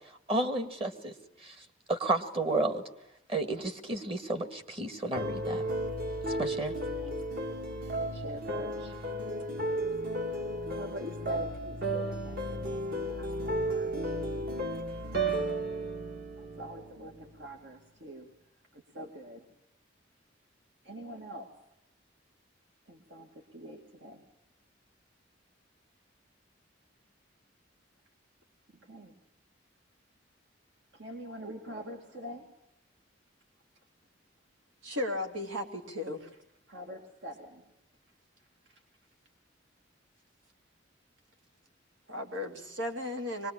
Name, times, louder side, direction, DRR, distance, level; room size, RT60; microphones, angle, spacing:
voice 1, 0.3-1.1 1.4-1.6 1.9-2.8 3.3-5.6 6.3-6.7, right 2 dB, 30° right, 8 dB, 1.7 m, -31 dB
sound 1, 5.1-17.3, right 1 dB, 50° right, 2.2 m, -34 dB
voice 2, 6.6-7.2 7.9-9.0 10.7-14.2 15.1-15.5 16.4-18.3 18.7-19.5 20.8-21.6 22.9-24.2 28.7-29.1 30.9-32.5 36.2-36.3 36.7-37.7 38.6-38.8, equal, 65° right, 2 dB, 2.5 m, -45 dB
voice 3, 34.8-36.3 42.1-43.5, left 1 dB, 80° right, 3 dB, 3.3 m, -35 dB
24.0 x 20.5 x 8.7 m, 0.84 s
head